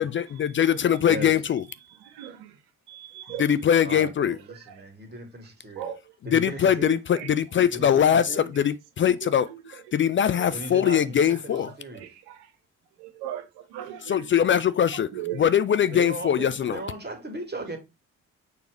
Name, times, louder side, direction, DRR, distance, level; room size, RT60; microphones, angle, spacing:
voice 1, 0.0-1.6 3.4-4.4 6.2-11.7 14.0-16.8, left 9 dB, 30° left, 0.4 m, -22 dB
voice 2, 2.1-2.5 2.9-3.4 5.8-6.0 12.3-12.4 13.0-13.4 13.7-14.1 15.1-15.4, right 11 dB, 65° right, 1.2 m, -36 dB
voice 3, 3.8-5.9 6.2-7.0 7.7-8.5 10.5-12.1 15.9-17.8, right 2 dB, 25° right, 2.2 m, -37 dB
6.8 x 3.1 x 5.1 m
figure-of-eight pair, 40°, 42 cm